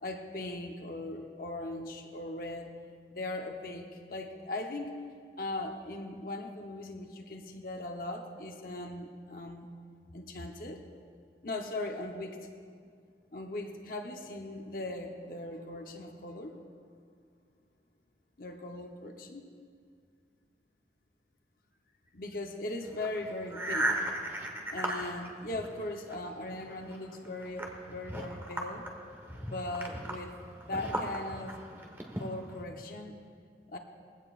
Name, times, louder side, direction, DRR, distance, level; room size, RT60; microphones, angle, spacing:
voice 1, 0.0-2.7 3.1-5.0 5.4-9.7 10.1-10.8 11.4-12.4 13.3-16.6 18.4-19.4 22.1-24.0 24.7-28.9 29.4-30.4 30.7-31.6 32.2-33.1 33.7-33.8, left 2 dB, 50° left, 3 dB, 0.9 m, -39 dB
sound 1, 22.9-26.1 26.5-32.6, right 1 dB, 15° right, 1.2 m, -37 dB
20.5 x 16.0 x 2.5 m, 2.2 s
head